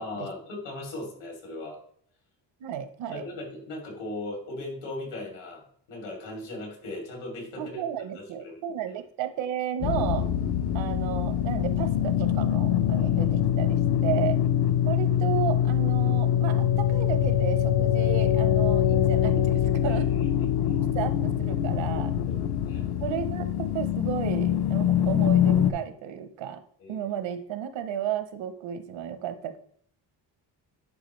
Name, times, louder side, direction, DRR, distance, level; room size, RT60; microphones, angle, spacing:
voice 1, 0.0-1.8 3.1-7.8 8.1-8.6 13.0-13.7 19.8-20.3 20.6-20.8 22.3-22.4 22.7-22.9 26.8-27.1, left 2 dB, 75° left, 0 dB, 3.0 m, -38 dB
voice 2, 2.6-3.2 7.6-10.3 10.7-14.4 14.9-20.1 20.9-22.1 23.0-26.6 26.9-29.6, right 10 dB, 90° right, 10 dB, 0.9 m, -33 dB
sound 1, 9.8-25.7, left 10 dB, 60° left, 0.7 m, -24 dB
10.0 x 4.6 x 3.2 m, 0.62 s
cardioid pair, 165°, 44 cm